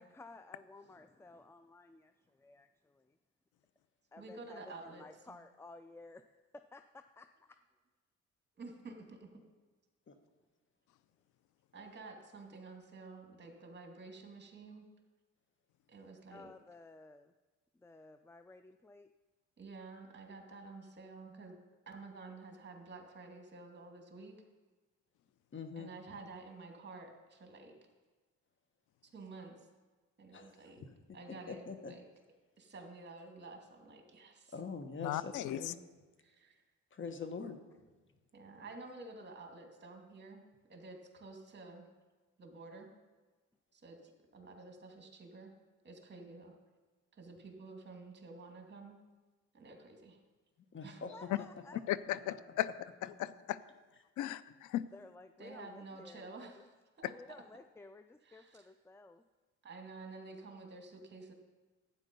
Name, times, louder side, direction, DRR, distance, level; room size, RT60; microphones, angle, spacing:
voice 1, 0.0-3.2 4.1-7.6 10.4-10.5 16.3-17.3 17.7-19.1 30.6-30.7 32.6-32.7 51.1-51.8 54.9-56.7 57.0-59.2, left 3 dB, 10° left, 9 dB, 0.4 m, -55 dB
voice 2, 4.2-5.4 8.6-9.3 11.7-14.9 15.9-16.5 19.6-21.6 21.9-24.4 25.8-27.8 29.1-29.6 30.2-30.8 31.1-32.0 32.6-34.5 36.2-36.6 38.3-40.4 40.7-41.9 42.4-42.9 43.7-45.5 45.8-46.6 47.1-49.0 49.5-50.2 50.8-51.0 55.4-56.6 57.0-57.1 58.3-58.7 59.6-61.3, right 3 dB, 35° right, 3 dB, 2.4 m, -51 dB
voice 3, 25.5-25.9 30.3-30.9 31.3-31.9 34.5-35.8 36.9-37.6 50.7-51.1, left 5 dB, 40° left, 7 dB, 1.3 m, -44 dB
voice 4, 35.0-35.7 51.3-51.4 51.9-52.7 53.2-53.6 54.2-54.9 57.0-57.1, left 13 dB, 85° left, 17 dB, 0.5 m, -36 dB
12.0 x 9.1 x 5.3 m, 1.3 s
cardioid pair, 90°, 30 cm